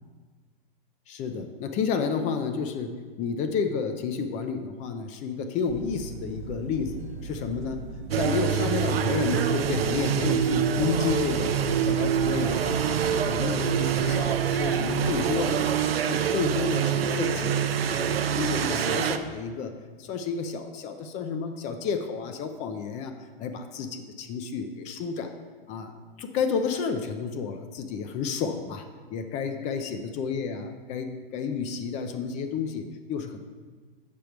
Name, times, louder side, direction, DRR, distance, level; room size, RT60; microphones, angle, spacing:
voice 1, 1.1-11.6 11.8-15.8 16.1-17.6 17.9-23.1 23.4-25.3 25.7-25.9 26.2-28.9 29.1-33.4, left 5 dB, 25° left, 7 dB, 0.4 m, -31 dB
sound 1, 5.7-15.5, right 4 dB, 60° right, 0.8 m, -40 dB
sound 2, 8.1-19.2, right 8 dB, 90° right, 0.5 m, -25 dB
6.8 x 5.2 x 4.5 m, 1.5 s
hypercardioid pair, 125°, 29 cm